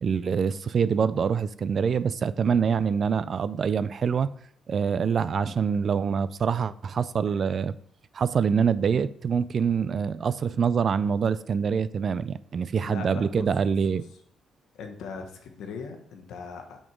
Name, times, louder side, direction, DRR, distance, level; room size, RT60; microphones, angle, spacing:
voice 1, 0.0-4.3 4.7-7.8 8.1-14.0, right 6 dB, 50° right, 0.3 m, -25 dB
voice 2, 12.8-13.5 14.8-16.8, left 5 dB, 80° left, 1.1 m, -39 dB
6.1 x 4.4 x 4.6 m
cardioid pair, 90°, 0 cm